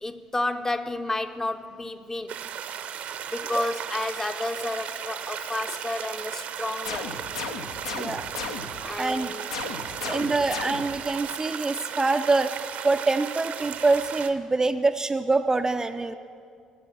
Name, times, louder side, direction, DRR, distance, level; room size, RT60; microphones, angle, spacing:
voice 1, 0.0-2.4 3.3-7.2 8.8-9.5 10.0-10.3, left 2 dB, 15° left, 0.7 m, -31 dB
sound 1, 2.3-14.3, right 8 dB, 50° right, 0.7 m, -35 dB
sound 2, 6.8-8.9 9.5-11.1, left 4 dB, 75° left, 0.8 m, -35 dB
voice 2, 9.0-9.3 10.0-12.5 12.8-16.1, right 3 dB, 20° right, 0.4 m, -25 dB
16.5 x 7.6 x 7.2 m
figure-of-eight pair, 50°, 3 cm